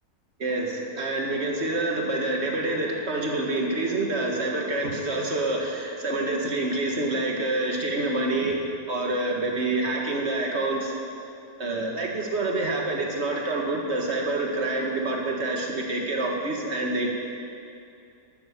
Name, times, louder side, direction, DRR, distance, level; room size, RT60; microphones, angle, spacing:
voice 1, 0.4-8.6 8.9-10.9 11.6-17.1, right 2 dB, 45° right, -1 dB, 2.0 m, -27 dB
12.5 x 9.5 x 6.9 m, 2.5 s
omnidirectional pair, 1.7 m